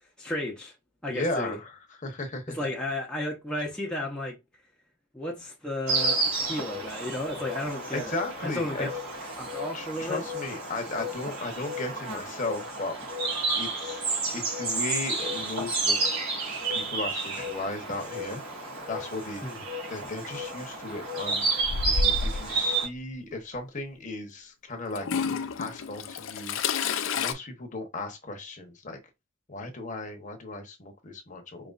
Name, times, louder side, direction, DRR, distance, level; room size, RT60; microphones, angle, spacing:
voice 1, 0.2-0.7 1.0-1.6 2.5-4.4 5.1-8.1 8.4-8.9 9.4-10.2 19.4-19.6, left 1 dB, 5° left, 0.7 m, -33 dB
voice 2, 1.1-2.7 7.9-8.9 9.7-13.0 13.6-14.1 14.3-16.0 16.7-18.4 18.9-19.4 19.9-25.1 25.6-26.6 27.1-29.0 29.5-31.7, left 2 dB, 35° left, 0.9 m, -36 dB
Insect, 5.9-22.9, right 3 dB, 70° right, 3.0 m, -31 dB
Toilet flush / Trickle dribble, 21.6-22.5 23.6-23.7 25.0-27.3, left 5 dB, 65° left, 0.5 m, -29 dB
5.2 x 3.1 x 2.4 m
head